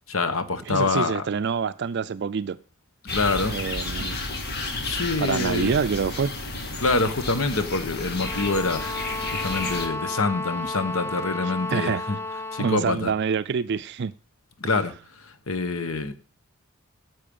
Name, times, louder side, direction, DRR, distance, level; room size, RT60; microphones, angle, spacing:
voice 1, 0.1-1.3 3.1-3.6 4.8-5.7 6.8-8.8 9.4-12.2 12.5-13.1 14.6-14.9 15.5-16.1, left 3 dB, 75° left, 1.2 m, -25 dB
voice 2, 0.7-2.6 3.5-4.2 5.2-6.3 11.4-12.0 12.6-14.1, right 6 dB, 55° right, 0.4 m, -26 dB
sound 1, 3.1-9.9, left 2 dB, 50° left, 1.8 m, -32 dB
sound 2, 8.1-12.9, left 2 dB, 10° left, 0.5 m, -32 dB
10.0 x 7.6 x 5.4 m
head